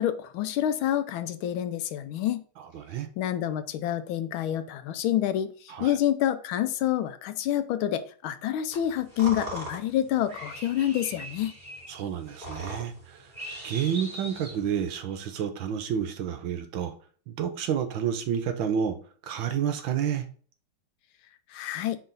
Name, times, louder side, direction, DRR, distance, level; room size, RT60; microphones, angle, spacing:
voice 1, 0.0-2.4 3.2-11.5 21.5-22.0, left 11 dB, 80° left, 1.4 m, -28 dB
voice 2, 2.7-3.1 5.7-5.9 11.9-13.3 13.6-16.9 17.3-19.0 19.2-20.3, right 8 dB, 70° right, 1.5 m, -30 dB
sound 1, 8.7-14.9, right 1 dB, 20° right, 2.9 m, -40 dB
4.7 x 3.9 x 5.2 m
omnidirectional pair, 2.3 m